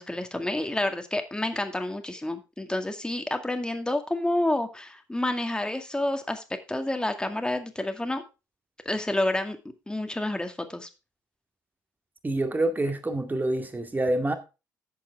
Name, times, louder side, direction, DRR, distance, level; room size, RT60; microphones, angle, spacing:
voice 1, 0.0-8.2 8.9-9.6 9.9-10.9, left 1 dB, 10° left, 2.0 m, -29 dB
voice 2, 12.2-14.3, right 1 dB, 20° right, 2.1 m, -27 dB
11.5 x 8.3 x 3.5 m
figure-of-eight pair, 50°, 10 cm